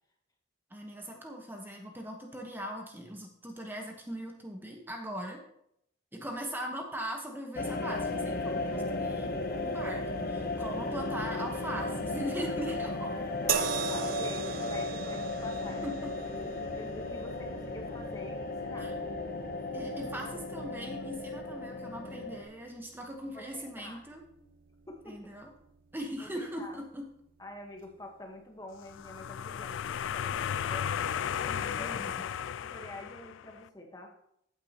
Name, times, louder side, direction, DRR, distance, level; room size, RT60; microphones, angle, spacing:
voice 1, 0.7-5.4 6.1-13.1 15.8-16.2 18.8-19.0 19.7-24.2 25.1-25.5 25.9-27.1 31.5-32.1, equal, 10° right, 2 dB, 1.0 m, -40 dB
sound 1, 7.5-22.4, left 2 dB, 50° left, 0.9 m, -35 dB
voice 2, 13.3-18.9 23.3-24.0 24.4-24.5 24.9-25.3 26.2-26.8 27.4-34.1, left 1 dB, 20° left, 2 dB, 1.1 m, -47 dB
sound 2, 13.5-26.8 27.8-27.9, right 6 dB, 50° right, 0.6 m, -41 dB
sound 3, 28.8-33.6, left 8 dB, 80° left, 0.3 m, -34 dB
14.5 x 8.4 x 2.9 m, 0.74 s
head